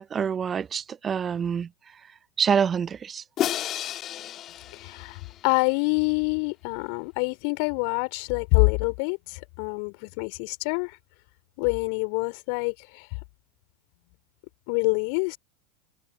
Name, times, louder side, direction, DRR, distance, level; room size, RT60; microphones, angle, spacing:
voice 1, 0.0-1.7 2.4-3.2, right 7 dB, 25° right, 0.9 m, -26 dB
Crash cymbal, 3.4-5.6, left 12 dB, 35° left, 2.0 m, -32 dB
voice 2, 4.7-11.0 11.6-13.1 14.7-15.4, left 39 dB, 55° left, 5.2 m, -26 dB
figure-of-eight pair, 85°, 0 cm